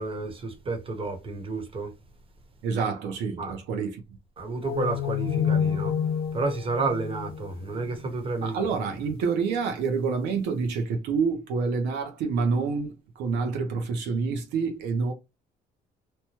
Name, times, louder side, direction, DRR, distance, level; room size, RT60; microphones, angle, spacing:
voice 1, 0.0-1.9 3.4-3.5 4.4-5.9 6.3-8.9, right 3 dB, 30° right, 1.1 m, -31 dB
voice 2, 2.6-4.0 8.4-15.1, right 5 dB, 80° right, 0.7 m, -27 dB
sound 1, 4.6-8.1, left 8 dB, 60° left, 0.4 m, -28 dB
2.9 x 2.1 x 2.9 m
cardioid pair, 110°, 17 cm